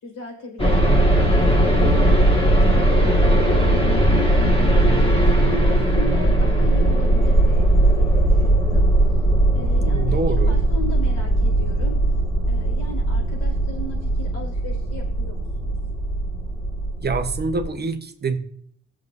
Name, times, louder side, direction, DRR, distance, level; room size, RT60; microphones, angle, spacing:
voice 1, 0.0-4.0 4.6-8.9 9.5-10.2 10.5-12.0 12.5-15.7, left 2 dB, 85° left, -2 dB, 5.0 m, -37 dB
sound 1, 0.6-17.7, right 1 dB, 20° left, 1.8 m, -18 dB
voice 2, 9.8-10.6 17.0-18.4, right 4 dB, 35° right, 7 dB, 1.1 m, -26 dB
17.5 x 7.4 x 2.7 m, 0.63 s
cardioid pair, 90°, 30 cm